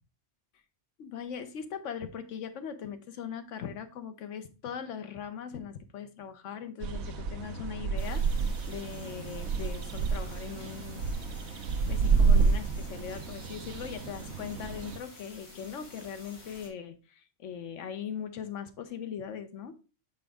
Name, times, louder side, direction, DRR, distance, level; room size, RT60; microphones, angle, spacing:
voice 1, 1.0-11.1 11.5-19.8, left 7 dB, 85° left, 1.1 m, -40 dB
sound 1, 6.8-15.0, right 5 dB, 70° right, 0.9 m, -29 dB
sound 2, 8.0-16.7, left 2 dB, 60° left, 2.0 m, -51 dB
6.0 x 5.1 x 3.4 m
omnidirectional pair, 1.2 m